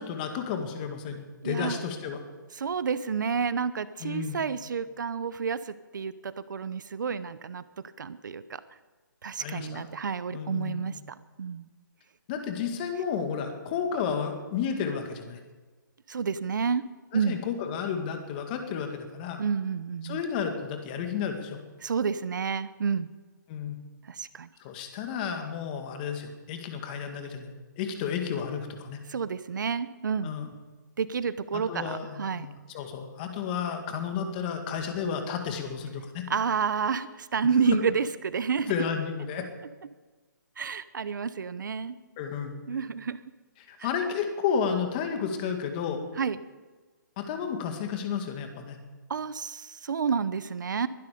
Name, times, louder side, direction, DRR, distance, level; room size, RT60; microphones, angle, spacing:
voice 1, 0.0-2.2 4.0-4.4 9.4-9.9 10.3-10.9 12.3-15.4 17.1-19.4 20.0-21.6 23.5-23.8 24.6-29.0 30.2-30.5 31.5-36.2 38.7-39.4 42.2-42.6 43.7-46.0 47.2-48.8, left 7 dB, 25° left, 5 dB, 2.0 m, -32 dB
voice 2, 1.4-1.8 2.6-7.6 8.0-8.6 9.2-10.9 11.4-11.7 16.1-16.8 17.1-17.4 19.4-20.2 21.8-23.1 24.1-24.5 29.1-30.4 31.0-32.5 36.3-38.7 40.6-42.0 42.7-43.2 43.8-43.9 46.2-46.4 49.1-50.9, right 6 dB, 65° right, 15 dB, 0.8 m, -29 dB
22.0 x 11.5 x 5.1 m, 1.3 s
hypercardioid pair, 165°, 11 cm